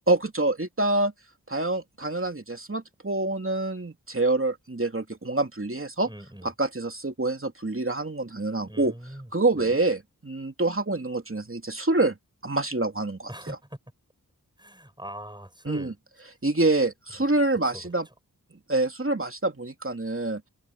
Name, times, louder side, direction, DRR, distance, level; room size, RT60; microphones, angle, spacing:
voice 1, 0.1-1.1 1.5-6.1 6.4-8.9 9.3-12.2 12.4-13.3 15.7-15.9 16.4-18.1 18.7-20.4, right 2 dB, 35° right, 2.9 m, -26 dB
voice 2, 6.0-6.5 8.6-9.8 13.3-13.8 14.6-15.9 17.2-17.3 17.7-18.1, right 1 dB, 10° right, 7.3 m, -42 dB
open air
cardioid pair, 40°, 36 cm